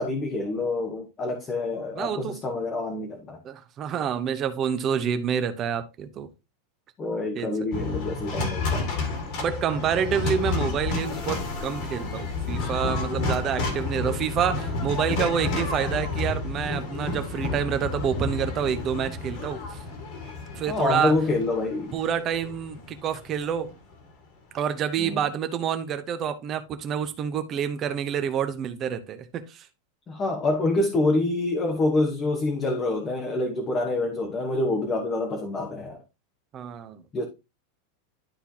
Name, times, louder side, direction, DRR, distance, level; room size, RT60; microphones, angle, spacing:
voice 1, 0.0-3.4 7.0-8.9 20.7-22.0 25.0-25.2 30.1-36.0 37.1-37.2, left 2 dB, 15° left, 1.0 m, -26 dB
voice 2, 2.0-2.4 3.4-6.3 7.3-7.7 9.4-19.8 20.5-21.1 21.9-23.7 24.5-29.7 36.5-37.0, right 8 dB, 20° right, 0.8 m, -28 dB
sound 1, 7.7-23.9, left 3 dB, 40° left, 2.0 m, -30 dB
11.5 x 4.4 x 2.8 m
supercardioid pair, 175°, 0 cm